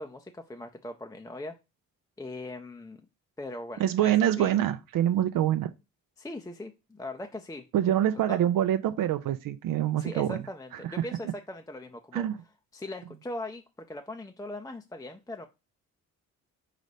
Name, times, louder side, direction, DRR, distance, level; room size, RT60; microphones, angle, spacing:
voice 1, 0.0-1.5 2.2-3.0 3.4-4.5 6.2-7.6 8.2-8.5 9.9-12.3 12.7-15.5, left 2 dB, 10° left, 0.5 m, -40 dB
voice 2, 3.8-5.7 7.7-10.4 12.1-12.3, right 11 dB, 65° right, 0.5 m, -25 dB
4.1 x 4.0 x 3.2 m
supercardioid pair, 60°, 36 cm